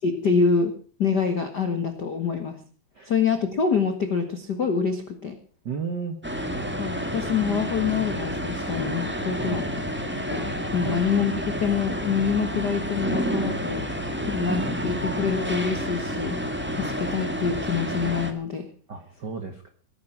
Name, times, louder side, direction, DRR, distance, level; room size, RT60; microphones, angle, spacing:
voice 1, 0.0-0.7 1.0-2.6 3.0-5.4 6.8-9.8 10.3-11.3 11.6-13.9 14.3-16.4 16.7-18.7, left 6 dB, 85° left, 7 dB, 0.9 m, -26 dB
voice 2, 5.6-6.2 9.4-9.6 10.8-11.0 18.9-19.7, right 6 dB, 80° right, 7 dB, 0.9 m, -33 dB
sound 1, 6.2-18.3, equal, 10° right, 0.5 m, -29 dB
18.5 x 10.5 x 6.0 m, 0.42 s
omnidirectional pair, 4.5 m